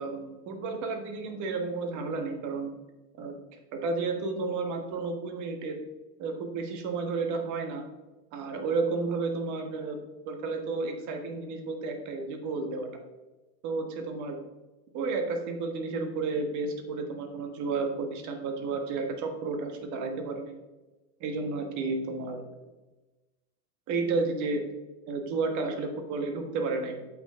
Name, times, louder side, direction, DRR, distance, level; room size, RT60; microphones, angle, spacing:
voice 1, 0.0-2.7 3.2-3.3 3.7-5.8 6.2-7.8 8.3-10.0 10.2-12.9 13.6-14.4 14.9-20.6 21.2-22.4 23.9-24.6 25.1-27.0, right 3 dB, 40° right, 5 dB, 1.4 m, -32 dB
7.8 x 6.1 x 3.7 m, 1.1 s
hypercardioid pair, 125°, 47 cm